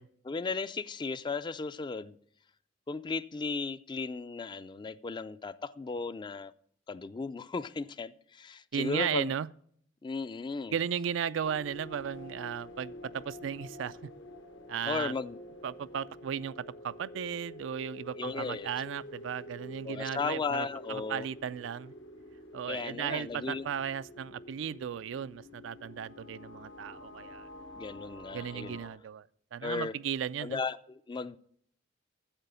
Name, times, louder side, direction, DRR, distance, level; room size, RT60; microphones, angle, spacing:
voice 1, 0.2-2.2 2.9-6.5 6.9-9.3 10.0-10.8 14.8-15.4 18.2-18.7 19.8-21.3 22.7-23.7 27.8-28.8 29.6-29.9 30.4-31.4, left 4 dB, 25° left, 0.3 m, -35 dB
voice 2, 8.7-9.5 10.7-14.1 14.7-15.1 15.6-21.9 22.5-27.5 28.3-30.6, right 8 dB, 80° right, 0.4 m, -35 dB
sound 1, 11.4-28.9, left 1 dB, 80° left, 1.2 m, -48 dB
8.9 x 7.6 x 6.7 m
head